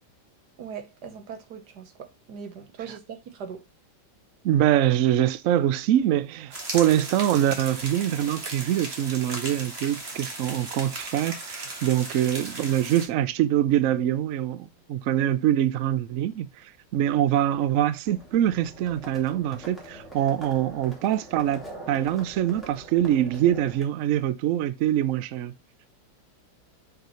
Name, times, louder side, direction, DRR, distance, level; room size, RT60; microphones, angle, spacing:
voice 1, 0.6-3.6, right 7 dB, 65° right, 1.6 m, -40 dB
voice 2, 4.4-25.5, right 11 dB, 85° right, 0.7 m, -24 dB
sound 1, 6.5-13.1, right 2 dB, 35° right, 1.8 m, -37 dB
Livestock farm animals working animals, 18.1-23.8, right 1 dB, ahead, 2.4 m, -44 dB
6.7 x 4.9 x 3.0 m
omnidirectional pair, 2.0 m